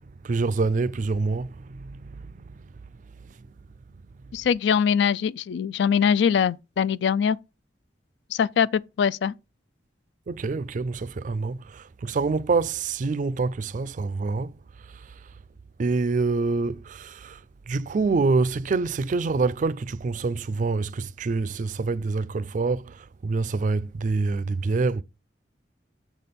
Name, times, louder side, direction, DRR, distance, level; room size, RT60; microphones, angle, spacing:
voice 1, 0.2-2.6 3.3-3.5 3.9-4.0 10.3-15.3 15.8-25.0, right 3 dB, 45° right, 0.4 m, -26 dB
voice 2, 4.3-7.4 8.3-9.3, left 7 dB, 75° left, 0.3 m, -22 dB
7.1 x 4.3 x 5.2 m
head